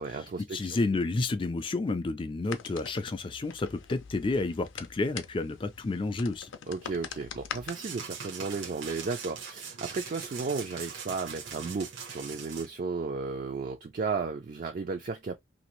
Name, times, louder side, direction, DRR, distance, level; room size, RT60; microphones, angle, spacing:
voice 1, 0.0-0.7 6.7-15.4, right 4 dB, 45° right, 0.3 m, -34 dB
voice 2, 0.5-6.5, left 3 dB, 25° left, 0.4 m, -30 dB
sound 1, 2.4-7.7, left 7 dB, 85° left, 0.5 m, -43 dB
sound 2, 7.7-12.7, right 6 dB, 80° right, 0.8 m, -41 dB
2.8 x 2.6 x 3.0 m
head